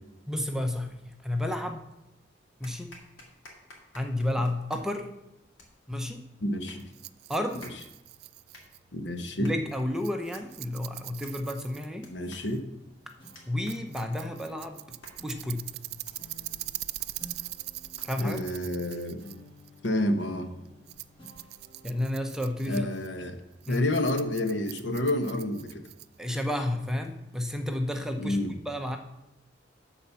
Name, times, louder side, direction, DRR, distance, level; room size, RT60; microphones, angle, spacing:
voice 1, 0.3-1.8 2.6-2.9 3.9-5.1 5.9-6.2 7.3-7.7 9.4-12.1 13.5-14.8 15.2-15.7 18.0-18.4 21.8-22.9 23.7-23.8 26.2-28.4 28.6-29.0, left 1 dB, 5° right, 4 dB, 0.6 m, -31 dB
sound 1, 2.6-20.2, left 2 dB, 85° left, 2.1 m, -56 dB
voice 2, 6.4-6.8 8.9-9.5 12.1-12.6 18.2-19.2 19.8-20.5 22.7-23.4 23.7-25.8 28.2-28.5, left 1 dB, 70° left, 7 dB, 1.0 m, -29 dB
Rattle, 6.8-26.4, right 17 dB, 55° right, 0.3 m, -43 dB
sound 2, 13.2-24.0, left 1 dB, 25° left, 2.2 m, -54 dB
11.5 x 4.3 x 6.9 m, 0.94 s
head